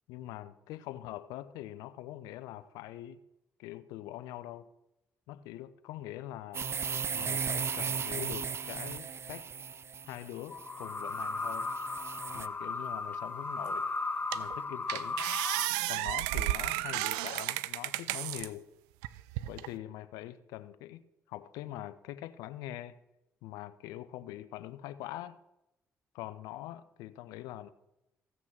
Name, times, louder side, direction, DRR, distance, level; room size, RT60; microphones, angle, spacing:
voice 1, 0.1-3.2 3.6-4.7 5.3-6.6 7.1-9.5 10.1-11.7 12.3-13.9 14.3-15.2 15.9-18.7 19.5-21.0 21.3-23.0 23.4-25.4 26.1-27.7, left 14 dB, 85° left, 0.6 m, -43 dB
sound 1, 6.5-12.5, right 6 dB, 45° right, 0.6 m, -36 dB
sound 2, 10.5-15.7, left 3 dB, 30° left, 1.0 m, -36 dB
sound 3, 13.7-13.8 14.3-14.6 14.9-18.5 19.0-19.7, right 17 dB, 90° right, 0.4 m, -33 dB
15.0 x 6.1 x 7.3 m
supercardioid pair, 55°, 6 cm